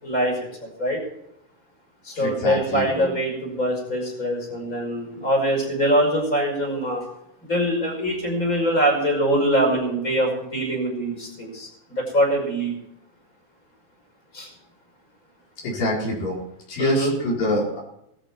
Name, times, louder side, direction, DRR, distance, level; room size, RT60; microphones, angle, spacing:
voice 1, 0.0-1.0 2.0-7.0 7.4-12.7 14.3-14.5 16.8-17.2, equal, 25° left, 0 dB, 5.9 m, -23 dB
voice 2, 2.1-3.1 15.6-16.4 16.7-17.8, left 1 dB, 85° left, -4 dB, 6.2 m, -25 dB
19.0 x 13.0 x 4.6 m, 0.80 s
omnidirectional pair, 3.8 m